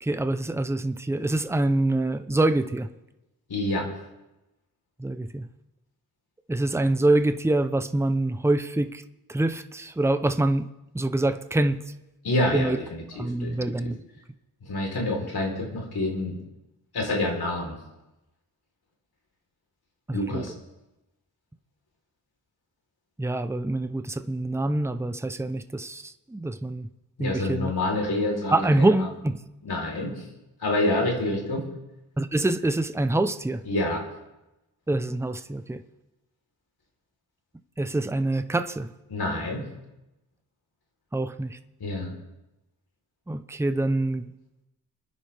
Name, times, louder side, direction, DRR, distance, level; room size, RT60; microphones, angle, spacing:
voice 1, 0.0-2.9 5.0-5.5 6.5-9.0 9.3-10.7 10.9-11.8 12.5-12.8 13.1-14.0 20.1-20.4 23.2-26.9 27.2-27.7 28.5-29.4 32.2-33.6 34.9-35.8 37.8-38.9 41.1-41.6 43.3-44.3, right 2 dB, 5° right, 9 dB, 0.7 m, -25 dB
voice 2, 3.5-3.9 12.2-13.5 13.8-13.9 14.7-16.4 16.9-17.7 20.1-20.5 27.2-28.7 29.7-30.1 30.6-31.6 33.7-34.0 39.1-39.6 41.8-42.1, left 1 dB, 80° left, 0 dB, 3.9 m, -27 dB
28.5 x 10.0 x 3.5 m, 0.97 s
wide cardioid pair, 95°, 38 cm